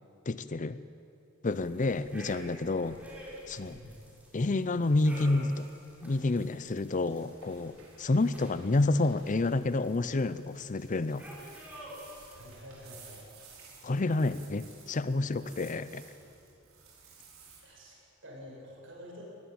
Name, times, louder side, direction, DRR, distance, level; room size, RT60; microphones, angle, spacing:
voice 1, 0.3-0.8 1.4-3.0 3.5-3.8 4.3-5.7 6.0-11.2 13.8-16.0, left 2 dB, 35° left, 14 dB, 0.6 m, -29 dB
sound 1, 1.5-12.9, equal, 5° right, 4.9 m, -50 dB
voice 2, 3.7-4.1 12.3-13.3 17.6-19.2, equal, 65° right, -3 dB, 7.8 m, -49 dB
sound 2, 7.1-17.6, right 5 dB, 80° right, 5.6 m, -56 dB
22.5 x 18.5 x 8.8 m, 2.6 s
head